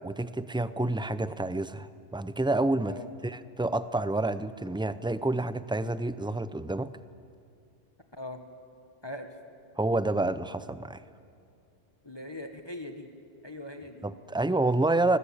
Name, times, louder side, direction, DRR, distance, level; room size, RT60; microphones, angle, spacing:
voice 1, 0.0-3.0 3.2-6.9 9.8-11.0 14.0-15.2, right 2 dB, 5° right, 13 dB, 0.4 m, -28 dB
voice 2, 12.0-13.1 13.4-14.1, left 1 dB, 25° left, 5 dB, 1.5 m, -40 dB
24.5 x 20.5 x 8.6 m, 2.5 s
omnidirectional pair, 1.1 m